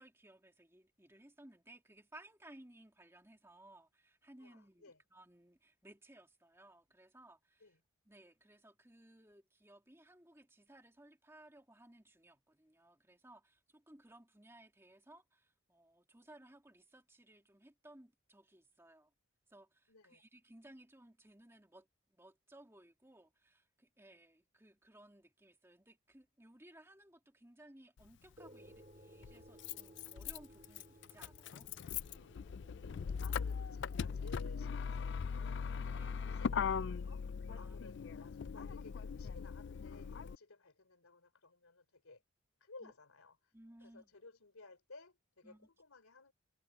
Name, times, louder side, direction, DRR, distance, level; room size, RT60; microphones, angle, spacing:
voice 1, 0.0-7.8 8.0-19.1 19.5-31.7 35.9-36.2 37.5-38.0 42.8-42.9 43.5-44.1 45.4-45.7, right 1 dB, 10° right, 2.4 m, -60 dB
voice 2, 4.4-5.0 7.6-7.8 19.9-20.2 32.8-35.6 36.2-37.2 37.6-42.2 42.6-43.3 43.8-46.3, left 3 dB, 85° left, 3.6 m, -57 dB
Motor vehicle (road), 28.0-28.1 29.2-40.4, left 6 dB, 55° left, 0.3 m, -40 dB
sound 1, 28.4-37.1, right 1 dB, 35° right, 4.6 m, -62 dB
head